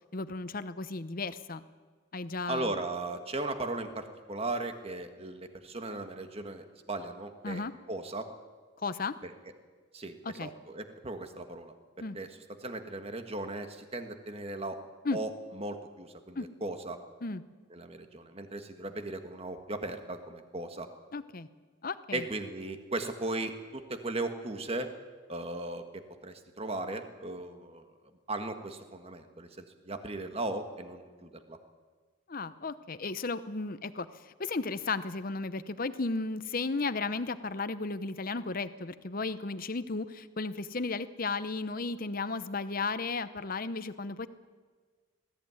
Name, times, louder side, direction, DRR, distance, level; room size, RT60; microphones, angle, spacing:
voice 1, 0.1-1.6 2.1-2.7 7.4-7.7 8.8-9.1 10.2-10.5 12.0-12.2 15.0-15.2 16.4-16.5 17.2-17.4 21.1-21.5 21.8-22.2 32.3-44.3, left 3 dB, 45° left, 13 dB, 0.8 m, -34 dB
voice 2, 2.5-7.6 7.9-8.3 9.2-9.3 9.9-11.7 12.1-12.3 12.6-14.8 15.1-17.0 17.7-20.9 22.1-24.9 25.3-27.8 28.3-31.6, right 2 dB, 30° right, 7 dB, 1.6 m, -37 dB
20.5 x 14.5 x 9.6 m, 1.5 s
head